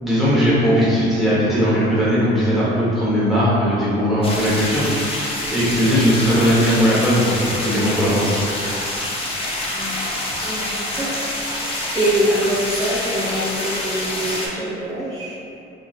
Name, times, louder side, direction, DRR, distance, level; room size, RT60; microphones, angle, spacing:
voice 1, 0.0-8.3, equal, ahead, -10 dB, 1.1 m, -18 dB
sound 1, 4.2-14.5, left 1 dB, 30° left, 0.6 m, -26 dB
voice 2, 10.3-11.3 11.9-15.3, right 1 dB, 20° right, -10 dB, 0.6 m, -24 dB
2.8 x 2.6 x 2.4 m, 2.7 s
cardioid pair, 90°, 20 cm